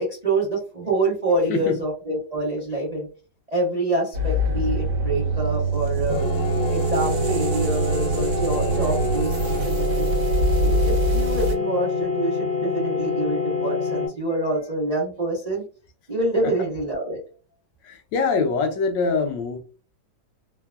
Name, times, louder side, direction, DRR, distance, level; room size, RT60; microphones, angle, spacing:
voice 1, 0.0-3.1 3.5-6.2 6.7-10.2 10.6-15.6 16.1-17.2, right 2 dB, 90° right, 0.3 m, -26 dB
sound 1, 4.1-11.6, right 2 dB, 55° right, 0.9 m, -24 dB
sound 2, 6.1-14.1, left 4 dB, 45° left, 0.8 m, -26 dB
voice 2, 17.8-19.6, left 4 dB, 75° left, 1.2 m, -24 dB
3.3 x 2.1 x 2.3 m
omnidirectional pair, 2.1 m